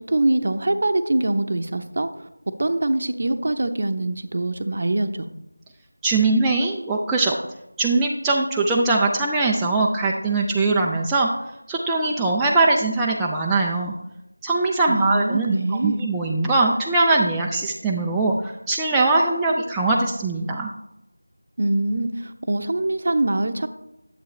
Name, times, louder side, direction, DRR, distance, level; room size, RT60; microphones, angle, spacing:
voice 1, 0.0-2.1 2.6-5.3 14.9-16.0 21.6-23.7, right 2 dB, 40° right, 9 dB, 0.7 m, -23 dB
voice 2, 6.0-7.4 7.8-11.3 11.7-13.9 14.4-20.7, right 3 dB, 5° right, -4 dB, 0.3 m, -21 dB
11.0 x 7.6 x 3.2 m, 0.88 s
figure-of-eight pair, 175°, 0 cm